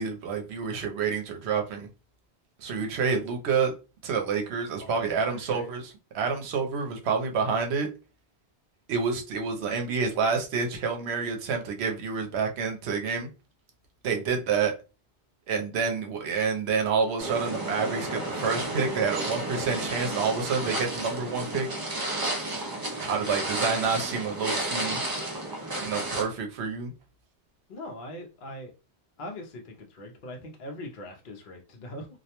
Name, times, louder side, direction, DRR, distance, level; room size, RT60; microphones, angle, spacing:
voice 1, 0.0-1.9 2.6-3.7 4.0-7.9 8.9-13.3 14.0-14.7 15.5-21.7 23.0-25.0 25.8-26.9, right 5 dB, 80° right, 0.9 m, -28 dB
voice 2, 5.3-5.7 27.7-28.7 29.2-32.1, left 1 dB, 60° left, 0.6 m, -41 dB
sound 1, 17.2-26.2, right 1 dB, 30° right, 0.4 m, -32 dB
2.3 x 2.1 x 2.8 m
omnidirectional pair, 1.1 m